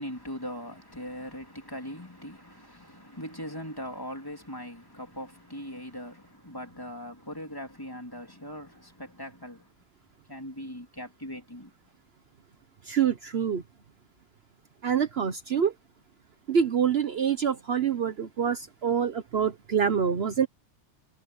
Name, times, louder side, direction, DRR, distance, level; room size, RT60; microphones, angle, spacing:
voice 1, 0.0-9.7 10.3-11.7, equal, 15° left, 3.4 m, -40 dB
voice 2, 12.9-13.6 14.8-15.7 16.5-20.5, right 7 dB, 55° right, 1.1 m, -26 dB
omnidirectional pair, 1.3 m